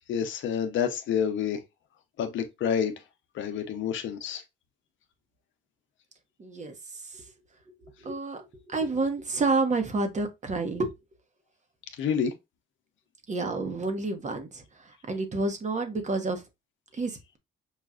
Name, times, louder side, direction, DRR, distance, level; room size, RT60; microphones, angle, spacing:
voice 1, 0.1-1.6 2.2-2.9 3.3-4.4 12.0-12.3, left 8 dB, 75° left, 0.7 m, -28 dB
voice 2, 6.4-7.3 7.7-10.9 13.3-16.4 16.9-17.4, right 3 dB, 35° right, 1.0 m, -30 dB
5.6 x 2.4 x 2.4 m
cardioid pair, 90°, 20 cm